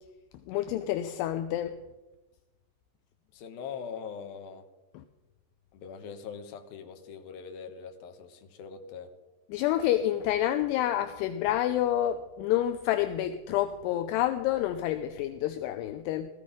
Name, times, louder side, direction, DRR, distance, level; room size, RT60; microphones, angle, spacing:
voice 1, 0.5-1.8 4.9-5.0 9.5-16.3, left 12 dB, 80° left, 2.7 m, -28 dB
voice 2, 3.3-4.6 5.7-9.1, left 6 dB, 65° left, 2.9 m, -42 dB
17.5 x 14.5 x 5.1 m
omnidirectional pair, 5.1 m